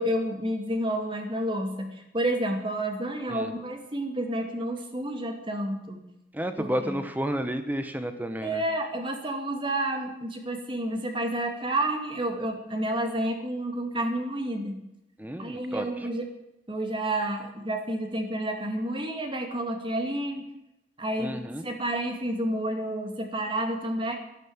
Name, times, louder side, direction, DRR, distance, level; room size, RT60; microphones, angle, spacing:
voice 1, 0.0-6.0 6.6-7.0 8.4-14.8 15.4-16.2 16.7-20.4 21.0-24.2, right 1 dB, 30° right, 4 dB, 2.3 m, -30 dB
voice 2, 6.3-8.6 15.2-15.9 21.2-21.6, equal, 10° right, 8 dB, 1.0 m, -31 dB
13.0 x 11.5 x 8.7 m, 0.88 s
head